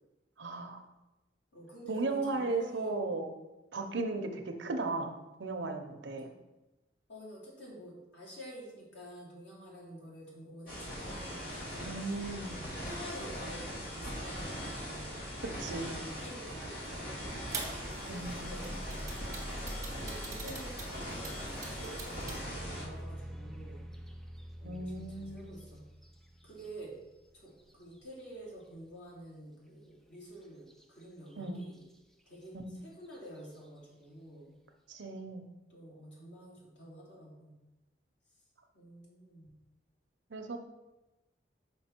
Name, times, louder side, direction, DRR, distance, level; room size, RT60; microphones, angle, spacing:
voice 1, 0.4-0.8 1.9-3.3 3.7-6.3 11.9-12.5 15.6-16.1 18.1-18.7 24.6-25.5 31.4-31.6 32.5-32.8 34.9-35.4 40.3-40.6, right 3 dB, 85° right, 5 dB, 0.7 m, -36 dB
voice 2, 1.5-2.9 7.1-11.9 12.4-15.2 15.9-17.2 18.0-19.1 19.9-21.3 21.6-23.8 24.6-25.8 26.4-26.9 27.3-31.8 32.3-34.5 35.7-37.6 38.7-39.5, right 1 dB, 85° left, -5 dB, 2.5 m, -49 dB
sound 1, 10.7-22.8, equal, 50° left, 2.0 m, -41 dB
sound 2, 17.5-22.4, right 2 dB, 20° right, 1.1 m, -43 dB
sound 3, 20.9-28.6 30.7-30.8 31.3-31.8 32.4-32.5 33.0-33.4, right 1 dB, ahead, 0.4 m, -48 dB
5.4 x 5.3 x 4.4 m, 1.0 s
head